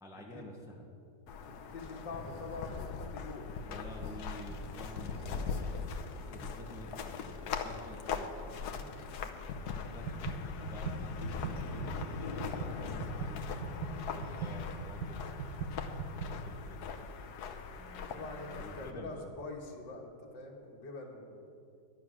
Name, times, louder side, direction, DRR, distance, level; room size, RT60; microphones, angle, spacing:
voice 1, 0.0-0.9 3.6-8.7 9.9-13.7 14.0-16.9 17.7-19.3, equal, ahead, -1 dB, 1.0 m, -50 dB
sound 1, 1.3-18.9, left 5 dB, 65° left, 1.3 m, -41 dB
voice 2, 1.4-3.6 6.3-6.6 8.8-9.1 18.1-21.5, left 3 dB, 90° left, -1 dB, 2.1 m, -45 dB
sound 2, 9.9-16.3, right 4 dB, 75° right, 1.7 m, -39 dB
12.5 x 9.2 x 6.2 m, 2.5 s
omnidirectional pair, 1.9 m